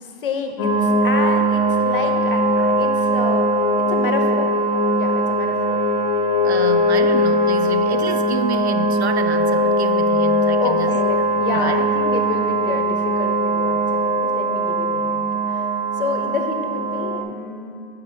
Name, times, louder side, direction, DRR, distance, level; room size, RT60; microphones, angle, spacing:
voice 1, 0.2-3.5 3.8-4.6 4.9-5.8 10.6-15.7 16.0-17.8, left 5 dB, 55° left, 6 dB, 1.0 m, -29 dB
sound 1, 0.6-17.2, equal, 20° left, 1.1 m, -20 dB
voice 2, 6.4-11.0 11.5-11.9, right 7 dB, 70° right, 10 dB, 0.7 m, -28 dB
8.9 x 6.0 x 5.0 m, 2.6 s
hypercardioid pair, 165°, 34 cm